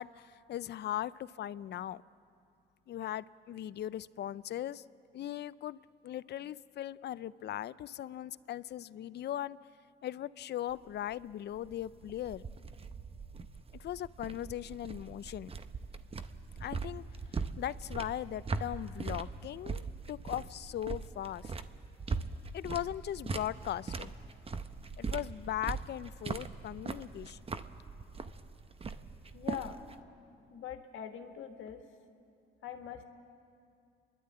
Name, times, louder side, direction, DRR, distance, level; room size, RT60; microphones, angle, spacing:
voice 1, 0.0-2.0 2.9-4.8 5.1-9.6 10.0-12.4 13.8-15.5 16.6-17.0 17.3-21.5 22.5-24.1 25.0-27.4, left 12 dB, 60° left, 17 dB, 0.5 m, -39 dB
sound 1, 10.7-30.0, right 4 dB, 30° right, 0.8 m, -41 dB
voice 2, 29.3-29.8 30.5-31.8 32.6-33.0, left 9 dB, 85° left, 6 dB, 1.6 m, -42 dB
29.5 x 11.5 x 8.6 m, 2.5 s
cardioid pair, 90°, 20 cm